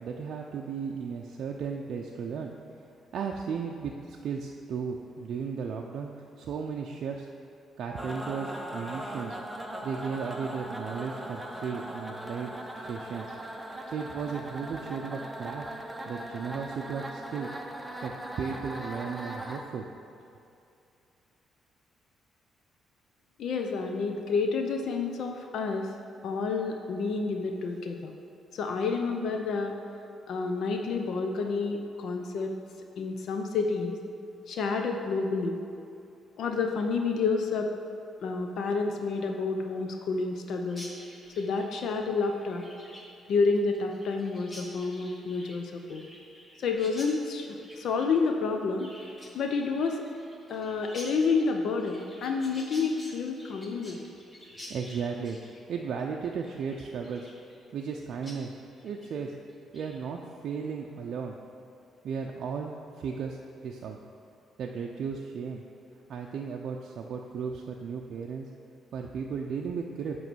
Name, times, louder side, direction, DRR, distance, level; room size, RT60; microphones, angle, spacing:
voice 1, 0.0-2.5 3.1-6.1 6.4-7.3 7.8-9.4 9.8-13.3 13.9-15.7 16.1-17.5 18.0-19.9 54.7-55.4 55.7-57.3 57.7-58.5 58.8-59.3 59.7-61.4 62.0-64.0 64.6-65.6 66.1-68.5 68.9-70.2, right 6 dB, 65° right, 0 dB, 0.4 m, -35 dB
sound 1, 8.0-19.6, right 1 dB, 10° right, 0.7 m, -39 dB
voice 2, 23.4-25.9 26.2-28.1 28.5-29.8 30.3-32.6 33.0-34.0 34.5-35.6 36.4-37.7 38.2-40.9 41.4-42.7 43.3-46.0 46.6-49.0 49.3-50.0 50.5-54.1, left 4 dB, 70° left, 4 dB, 0.6 m, -29 dB
Chirp tweet, 40.7-57.9 58.2-58.4 58.7-59.1 59.5-60.0, left 1 dB, 20° left, 1.4 m, -49 dB
9.0 x 3.1 x 6.1 m, 2.6 s
cardioid pair, 90°, 0 cm